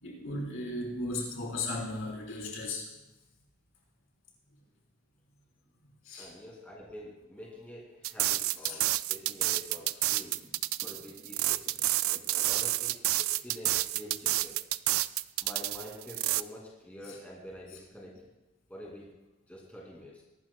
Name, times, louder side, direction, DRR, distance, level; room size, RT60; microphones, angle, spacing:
voice 1, 0.0-2.9 6.0-6.3 8.6-8.8, left 2 dB, 65° left, -4 dB, 4.0 m, -36 dB
voice 2, 6.2-14.5 15.4-18.1 18.7-19.1 19.5-20.2, equal, 5° left, -4 dB, 2.4 m, -47 dB
sound 1, 8.0-16.4, right 16 dB, 70° right, 0.3 m, -29 dB
22.5 x 12.5 x 2.2 m, 1.0 s
head